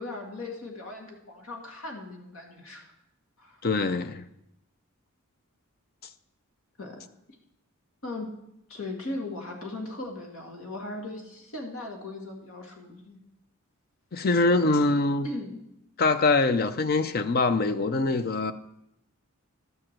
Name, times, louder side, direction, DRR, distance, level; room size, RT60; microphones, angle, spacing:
voice 1, 0.0-2.9 3.4-3.6 6.8-7.0 7.3-7.4 8.0-8.3 8.7-13.2 15.2-15.6, left 2 dB, 70° left, 2.2 m, -38 dB
voice 2, 3.6-4.2 14.1-15.3 16.0-18.5, left 3 dB, 45° left, 0.5 m, -23 dB
12.5 x 4.9 x 7.4 m
head